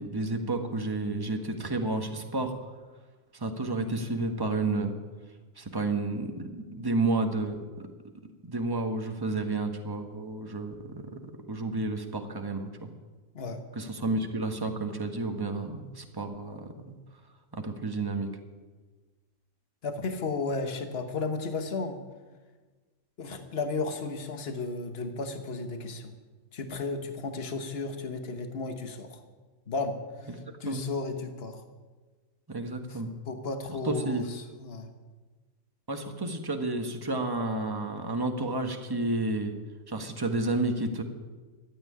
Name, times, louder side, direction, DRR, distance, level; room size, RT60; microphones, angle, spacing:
voice 1, 0.0-2.5 3.3-4.9 5.6-7.6 8.4-12.9 13.7-17.0 17.5-18.3 30.3-30.4 30.7-30.8 32.5-33.1 33.7-34.3 35.9-39.5 39.9-41.0, right 2 dB, 15° right, 5 dB, 1.3 m, -31 dB
voice 2, 19.8-22.0 23.2-26.1 26.5-29.2 29.7-29.9 30.6-31.6 32.9-33.0 33.3-34.9, left 3 dB, 50° left, 6 dB, 1.5 m, -34 dB
13.5 x 9.4 x 10.0 m, 1.4 s
omnidirectional pair, 1.4 m